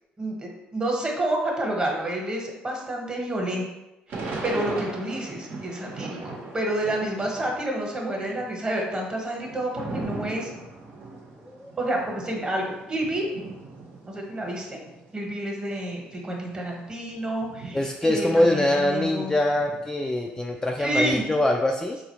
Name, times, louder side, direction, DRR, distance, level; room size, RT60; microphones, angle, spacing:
voice 1, 0.2-3.6 4.4-10.5 11.8-13.3 14.1-14.8 15.1-19.3 20.8-21.3, right 1 dB, 25° right, 0 dB, 1.1 m, -29 dB
Thunder / Rain, 4.1-7.7 8.0-15.1 15.7-15.8 16.0-19.2 19.5-21.3, right 3 dB, 60° right, 0.8 m, -39 dB
voice 2, 17.7-22.0, left 1 dB, 15° left, 1 dB, 0.3 m, -23 dB
4.0 x 2.4 x 3.0 m, 0.95 s
supercardioid pair, 75°, 4 cm